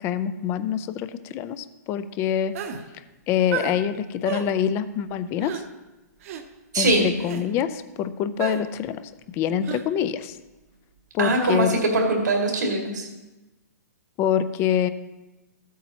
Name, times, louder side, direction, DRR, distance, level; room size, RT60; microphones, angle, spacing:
voice 1, 0.0-2.6 3.3-5.6 6.7-9.0 9.3-10.4 11.1-11.8 14.2-14.9, left 9 dB, 25° left, 13 dB, 0.4 m, -25 dB
sound 1, 2.5-2.8 3.5-3.8 4.2-4.5 5.4-5.6 6.2-6.4 7.2-7.5 8.4-8.6 9.6-9.9 11.4-11.6, right 7 dB, 50° right, 0.9 m, -31 dB
voice 2, 6.7-7.1 11.2-13.0, right 2 dB, 85° right, 0 dB, 2.2 m, -22 dB
14.0 x 8.3 x 2.9 m, 1.1 s
hypercardioid pair, 140°, 9 cm